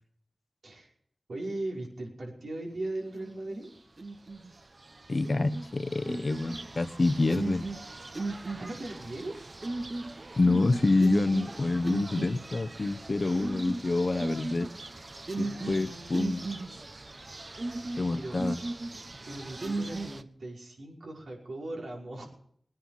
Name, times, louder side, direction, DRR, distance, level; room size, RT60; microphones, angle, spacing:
voice 1, 1.3-3.7 8.2-9.4 15.3-16.8 18.1-18.4 19.2-22.3, right 2 dB, 90° right, -2 dB, 5.8 m, -39 dB
sound 1, 3.1-3.6 4.0-4.5 5.0-20.2, right 2 dB, 50° right, 1.1 m, -37 dB
voice 2, 5.1-7.7 10.4-14.7 15.4-16.5 18.0-18.6, left 2 dB, 55° left, 11 dB, 1.0 m, -27 dB
20.5 x 10.0 x 5.9 m, 0.65 s
cardioid pair, 50°, 0 cm